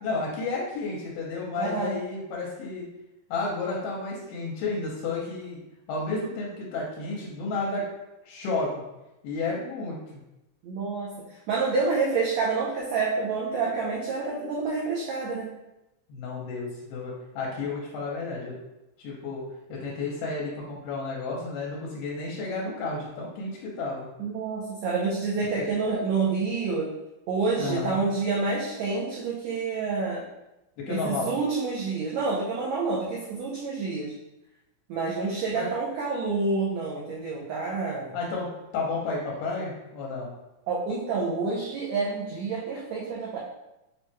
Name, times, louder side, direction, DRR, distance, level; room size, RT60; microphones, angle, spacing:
voice 1, 0.0-2.9 3.3-5.6 5.9-7.9 8.3-8.8 9.2-10.2 16.1-18.5 19.0-19.4 19.7-24.1 27.6-28.0 30.8-31.3 35.5-35.7 38.1-40.3, left 3 dB, 85° left, -3 dB, 2.3 m, -32 dB
voice 2, 1.6-1.9 10.6-15.5 24.2-26.9 27.3-30.3 30.9-34.1 34.9-38.2 40.7-43.4, right 4 dB, 90° right, -4 dB, 1.5 m, -28 dB
5.9 x 2.1 x 3.0 m, 0.94 s
omnidirectional pair, 3.8 m